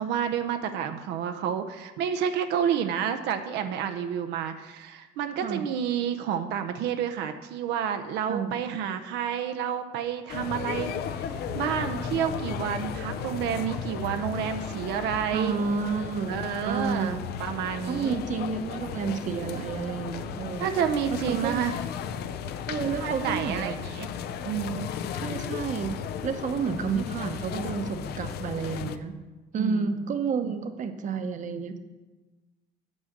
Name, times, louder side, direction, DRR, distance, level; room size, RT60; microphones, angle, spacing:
voice 1, 0.0-10.9 11.5-15.6 16.3-18.2 19.5-19.7 20.6-21.8 23.0-24.1 24.4-24.9 29.6-30.0 30.3-30.5, right 8 dB, 85° right, 7 dB, 0.6 m, -30 dB
sound 1, 10.3-29.0, left 7 dB, 75° left, 0.6 m, -35 dB
voice 2, 15.3-17.2 17.9-20.7 21.1-21.6 22.7-23.7 25.1-29.1 29.5-31.8, right 5 dB, 50° right, 8 dB, 0.8 m, -30 dB
7.3 x 6.3 x 6.6 m, 1.2 s
cardioid pair, 110°, 17 cm